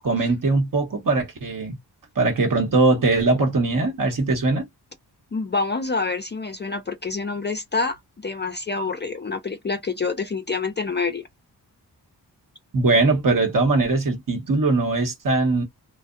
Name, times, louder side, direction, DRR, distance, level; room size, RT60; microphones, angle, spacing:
voice 1, 0.0-1.8 2.2-4.7 12.7-15.6, right 3 dB, 50° right, 1.0 m, -21 dB
voice 2, 5.3-11.2, left 4 dB, 30° left, 0.4 m, -27 dB
2.6 x 2.1 x 2.3 m
wide cardioid pair, 100°, 41 cm